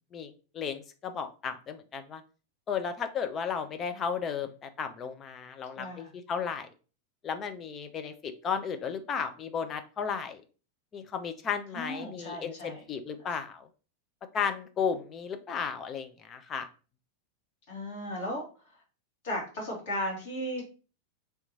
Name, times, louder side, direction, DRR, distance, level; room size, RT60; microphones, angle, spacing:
voice 1, 0.1-2.2 2.7-6.7 7.2-10.4 10.9-13.7 14.3-16.7, left 6 dB, 25° left, 8 dB, 0.5 m, -34 dB
voice 2, 5.8-6.1 11.7-12.8 17.7-18.5 19.2-20.6, equal, 50° left, -2 dB, 2.0 m, -35 dB
3.4 x 2.9 x 4.0 m, 0.35 s
figure-of-eight pair, 90°, 0 cm